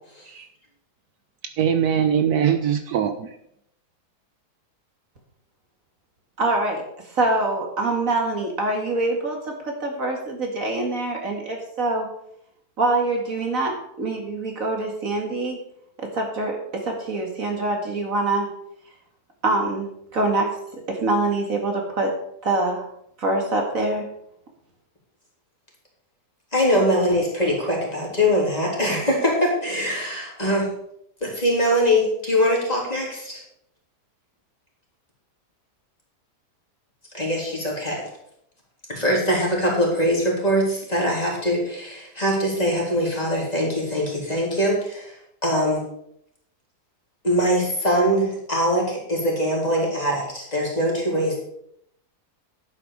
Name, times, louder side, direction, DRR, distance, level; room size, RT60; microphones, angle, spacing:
voice 1, 1.6-3.4, right 8 dB, 75° right, 8 dB, 1.2 m, -22 dB
voice 2, 6.4-6.8 7.1-12.1 12.8-15.6 16.0-18.5 19.4-20.5 20.9-22.1 22.4-22.9 23.2-24.1, right 2 dB, 55° right, 1 dB, 2.4 m, -24 dB
voice 3, 26.5-30.7 31.2-33.4 37.1-38.0 38.9-45.2 45.4-45.8 47.2-51.4, equal, 25° left, -3 dB, 3.4 m, -22 dB
11.0 x 8.6 x 4.8 m, 0.74 s
omnidirectional pair, 1.7 m